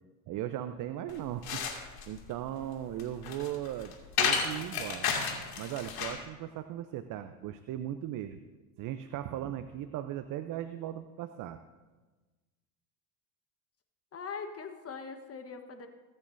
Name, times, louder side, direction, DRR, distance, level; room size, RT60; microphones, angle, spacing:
voice 1, 0.3-1.6 2.1-5.1 5.6-8.4 8.8-11.6, right 12 dB, 45° right, 10 dB, 0.7 m, -37 dB
sound 1, 1.1-6.3, left 6 dB, 50° left, 2.4 m, -33 dB
voice 2, 14.1-15.9, left 5 dB, 30° left, 6 dB, 1.3 m, -41 dB
22.5 x 8.8 x 2.7 m, 1.3 s
hypercardioid pair, 75°, 46 cm